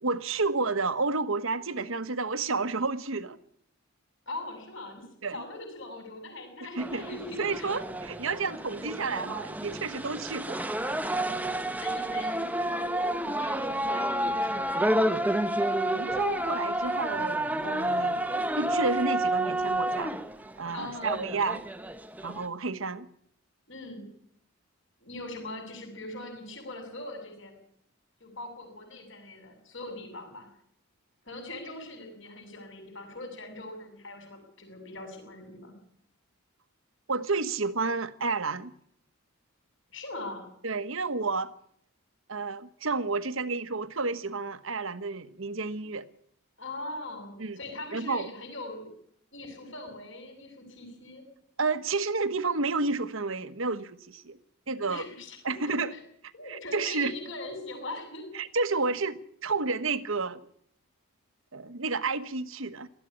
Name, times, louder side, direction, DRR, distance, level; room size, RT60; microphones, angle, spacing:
voice 1, 0.0-3.4 5.2-5.4 6.8-7.1 7.4-10.6 15.9-18.2 18.6-20.1 20.6-21.6 22.2-23.1 37.1-38.7 40.6-41.5 42.3-46.1 47.4-47.6 47.9-48.3 51.6-54.4 54.7-55.1 55.4-55.9 56.5-57.1 58.3-60.4 61.5-62.9, right 3 dB, 65° right, 1.3 m, -30 dB
voice 2, 4.3-7.8 11.8-15.1 20.7-21.4 23.7-24.0 25.0-27.5 28.2-30.5 31.2-35.7 39.9-40.5 45.8-45.9 46.6-48.9 49.3-51.2 54.8-56.0 56.3-58.3, left 2 dB, 55° left, 7.4 m, -41 dB
sound 1, 6.8-22.5, right 1 dB, 5° right, 1.0 m, -30 dB
19.0 x 14.0 x 9.9 m
head